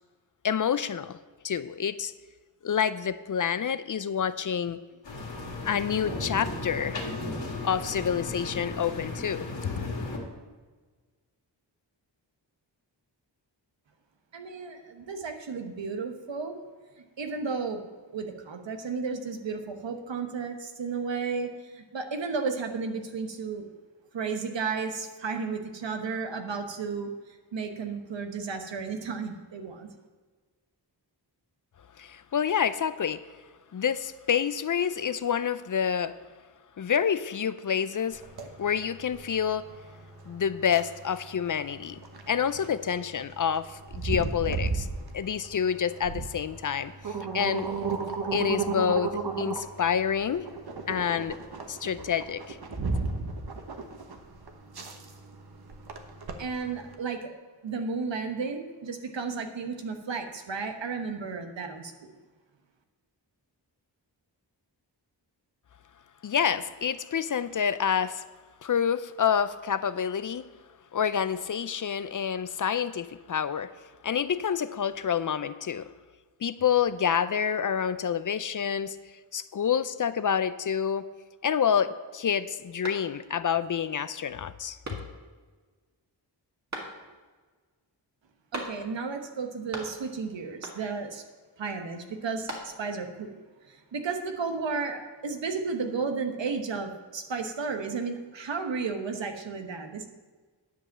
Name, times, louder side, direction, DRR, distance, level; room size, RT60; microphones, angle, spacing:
voice 1, 0.4-1.2 1.4-2.1 2.6-4.8 5.6-7.0 7.6-9.8 32.0-33.2 33.7-36.2 36.8-38.2 38.6-39.7 40.3-42.0 42.3-44.9 45.1-47.7 48.3-50.5 50.9-51.4 51.7-52.6 66.2-68.2 68.6-70.5 70.9-73.7 74.0-75.9 76.4-79.0 79.3-81.1 81.4-84.8, left 8 dB, 45° left, 14 dB, 0.5 m, -28 dB
sound 1, 5.0-10.2, left 2 dB, 75° left, 2.0 m, -35 dB
voice 2, 14.3-16.6 17.2-17.8 18.1-23.6 24.1-29.9 56.4-57.3 57.6-62.1 88.5-91.2 91.6-93.3 93.7-100.1, right 4 dB, 80° right, 5 dB, 1.2 m, -33 dB
sound 2, 38.1-56.9, right 4 dB, 55° right, 1.1 m, -35 dB
sound 3, 82.8-83.5 83.9-84.0 84.8-85.4 86.7-87.3 88.5-89.1 89.4-90.2 90.6-91.1 92.1-93.0, right 2 dB, 40° right, 1.8 m, -40 dB
10.0 x 5.3 x 7.3 m, 1.4 s
wide cardioid pair, 75°, 44 cm